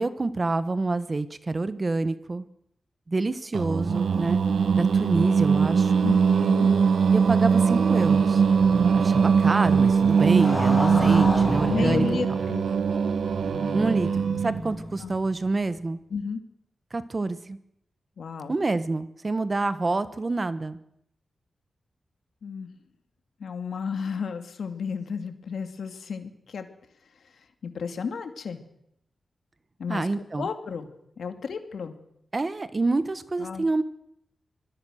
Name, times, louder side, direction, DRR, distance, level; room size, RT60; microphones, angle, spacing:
voice 1, 0.0-2.5 3.1-4.4 4.7-6.0 7.1-8.4 8.9-12.1 13.7-16.0 16.9-17.6 18.5-20.8 29.9-30.5 32.3-33.8, right 3 dB, 30° right, 13 dB, 1.3 m, -27 dB
Singing, 3.5-14.7, right 6 dB, 80° right, 1.2 m, -21 dB
voice 2, 6.0-6.7 11.7-12.7 15.0-15.1 16.1-16.4 18.2-18.5 22.4-22.7 23.4-26.7 27.6-28.6 29.8-30.1 30.4-30.9 31.2-31.9 33.4-33.7, left 5 dB, 80° left, 8 dB, 2.5 m, -32 dB
Motorcycle, 7.3-15.3, left 1 dB, 5° left, 6.2 m, -33 dB
25.5 x 20.0 x 6.5 m, 0.75 s
wide cardioid pair, 125°, 0 cm